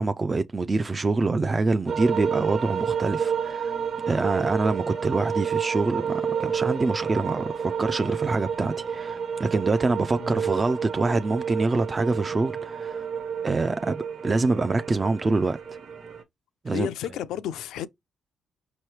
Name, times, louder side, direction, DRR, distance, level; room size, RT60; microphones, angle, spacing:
voice 1, 0.0-3.7 4.1-13.1 13.4-15.6 16.6-16.9, right 3 dB, 25° right, 0.3 m, -25 dB
sound 1, 1.9-16.2, right 7 dB, 60° right, 1.3 m, -30 dB
voice 2, 10.2-10.5 16.7-17.9, left 10 dB, 85° left, 0.4 m, -32 dB
5.5 x 3.0 x 3.2 m
cardioid pair, 90°, 0 cm